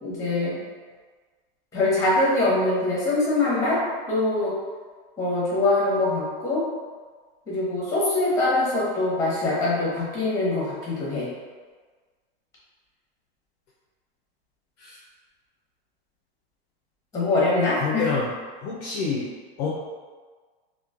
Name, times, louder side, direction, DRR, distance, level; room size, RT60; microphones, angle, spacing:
voice 1, 0.0-0.6 1.7-3.8 4.1-4.5 5.2-6.7 7.5-11.3 17.1-18.1, left 2 dB, 10° left, -7 dB, 0.9 m, -23 dB
voice 2, 17.8-18.3 18.6-19.2 19.6-19.7, left 5 dB, 40° left, -5 dB, 0.4 m, -27 dB
2.9 x 2.2 x 2.4 m, 1.4 s
supercardioid pair, 150°, 30 cm